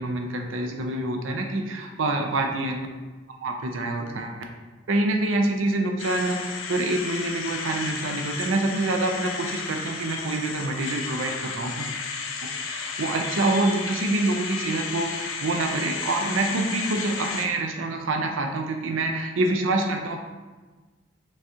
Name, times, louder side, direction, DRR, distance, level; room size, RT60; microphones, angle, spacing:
voice 1, 0.0-2.9 3.4-4.4 4.9-11.9 12.4-20.2, right 2 dB, 80° right, 3 dB, 0.5 m, -26 dB
sound 1, 6.0-17.5, left 4 dB, 85° left, 0.5 m, -33 dB
6.0 x 2.3 x 2.8 m, 1.3 s
head